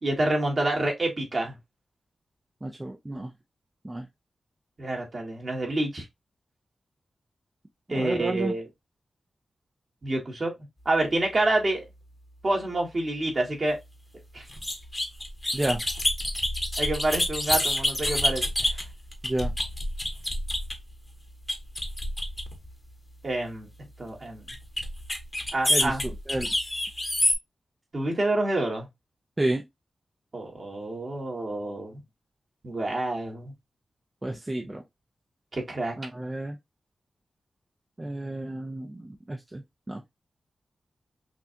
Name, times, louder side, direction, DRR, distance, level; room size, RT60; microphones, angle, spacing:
voice 1, 0.0-1.5 4.8-6.0 7.9-8.6 10.0-10.5 10.8-11.8 12.4-13.8 14.3-14.4 16.8-18.5 23.2-23.7 24.0-24.4 25.5-26.0 27.9-28.9 30.3-32.0 32.6-33.5 35.5-35.9, right 2 dB, 40° right, 1.7 m, -27 dB
voice 2, 2.6-3.3 3.8-4.1 7.9-8.5 15.5-15.8 19.2-19.5 25.7-26.5 29.4-29.7 34.2-34.8 36.0-36.6 38.0-40.0, right 1 dB, 20° right, 0.5 m, -31 dB
sound 1, 14.5-20.9 21.5-22.7 24.5-27.3, left 1 dB, 15° left, 1.0 m, -28 dB
5.9 x 2.4 x 2.7 m
wide cardioid pair, 105°, 0 cm